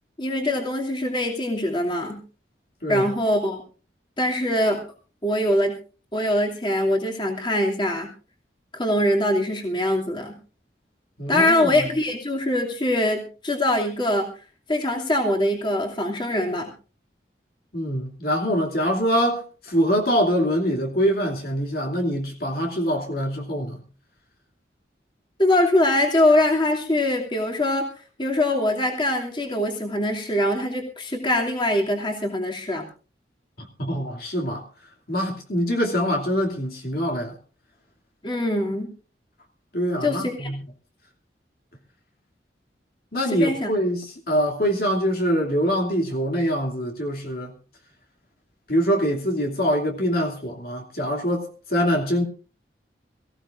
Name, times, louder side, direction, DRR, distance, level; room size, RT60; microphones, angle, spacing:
voice 1, 0.2-2.2 2.9-3.6 4.2-4.8 5.2-5.8 6.1-8.1 8.7-10.4 11.3-14.3 14.7-16.7 25.4-27.9 28.2-32.8 38.2-38.9 40.0-40.5 43.3-43.7, left 1 dB, 25° left, 2.8 m, -23 dB
voice 2, 11.2-11.9 17.7-23.8 33.6-34.6 35.1-37.3 39.7-40.6 43.1-47.5 48.7-52.2, equal, 55° left, 2.8 m, -24 dB
24.0 x 16.0 x 2.6 m
head